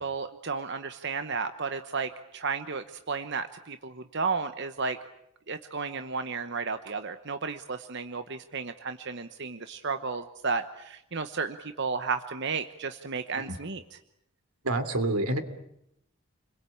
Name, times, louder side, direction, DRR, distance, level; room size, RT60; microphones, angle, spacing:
voice 1, 0.0-5.0 5.5-13.8, right 4 dB, 55° right, 9 dB, 1.0 m, -33 dB
voice 2, 14.6-15.4, right 2 dB, 90° right, 9 dB, 3.0 m, -28 dB
29.5 x 22.0 x 8.6 m, 0.80 s
head